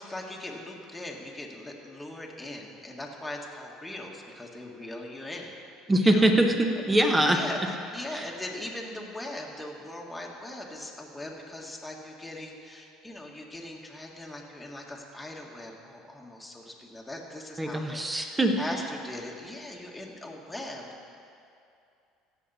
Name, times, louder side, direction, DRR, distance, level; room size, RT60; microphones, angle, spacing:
voice 1, 0.0-5.5 6.1-6.3 6.8-6.9 7.3-18.3 18.6-21.1, left 1 dB, 5° left, -2 dB, 1.7 m, -40 dB
voice 2, 5.9-7.4 8.1-8.3 17.6-18.7, right 1 dB, 15° right, 4 dB, 1.2 m, -23 dB
16.0 x 6.7 x 4.2 m, 2.5 s
supercardioid pair, 90°, 0 cm